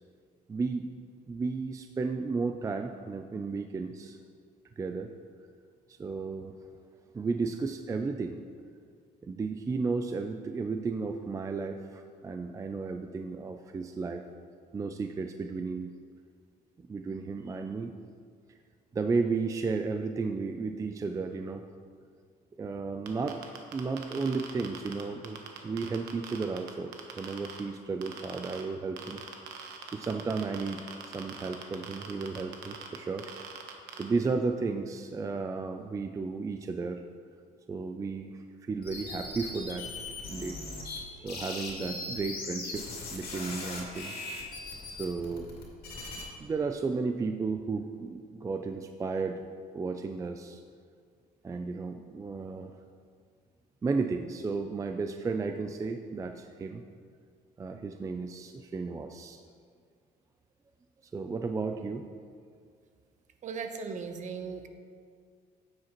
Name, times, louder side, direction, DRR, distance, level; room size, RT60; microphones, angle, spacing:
voice 1, 0.5-0.9 1.3-4.2 4.8-5.1 5.9-6.5 7.1-8.4 9.2-14.2 14.7-15.9 16.8-17.9 18.9-21.7 22.6-23.4 23.7-25.4 25.6-29.2 29.9-33.3 34.0-37.0 37.7-39.9 40.3-40.5 41.1-44.1 44.9-45.5 46.4-49.4 49.7-50.6 51.4-52.8 53.8-56.8 57.6-59.4 61.1-62.0, right 4 dB, 20° right, 6 dB, 0.3 m, -33 dB
sound 1, 23.1-27.6 28.0-28.6 29.0-34.0, right 8 dB, 80° right, 1.0 m, -42 dB
sound 2, 38.8-41.0 41.3-46.2, left 2 dB, 60° left, 2.3 m, -39 dB
voice 2, 63.4-64.7, right 5 dB, 45° right, 7 dB, 0.8 m, -37 dB
9.8 x 7.6 x 3.0 m, 2.1 s
cardioid pair, 110°, 17 cm